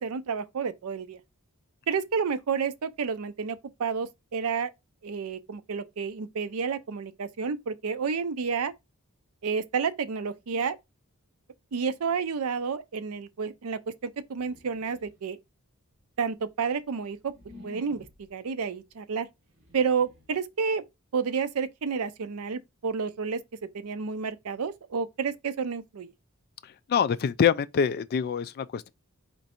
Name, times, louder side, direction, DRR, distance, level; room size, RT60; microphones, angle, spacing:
voice 1, 0.0-1.2 1.9-4.7 5.0-8.7 9.4-10.8 11.7-15.4 16.2-17.3 17.6-18.0 18.3-19.3 19.7-20.8 21.1-23.4 23.7-26.1, right 6 dB, 75° right, 0.5 m, -30 dB
sound 1, 14.3-15.3 16.0-18.4 19.3-20.4, left 1 dB, 60° right, 1.7 m, -52 dB
voice 2, 26.6-28.9, left 7 dB, 45° left, 0.3 m, -25 dB
4.4 x 2.6 x 4.1 m
head